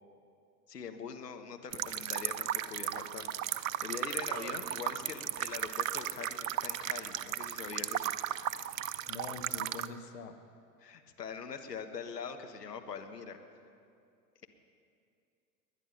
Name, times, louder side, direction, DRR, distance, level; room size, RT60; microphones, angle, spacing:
voice 1, 0.7-8.1 10.8-13.6, left 6 dB, 75° left, 6 dB, 1.2 m, -43 dB
sound 1, 1.7-9.9, right 12 dB, 55° right, 0.6 m, -35 dB
voice 2, 9.1-10.4, left 5 dB, 55° left, 7 dB, 1.3 m, -44 dB
20.0 x 10.5 x 5.7 m, 2.4 s
figure-of-eight pair, 85°, 48 cm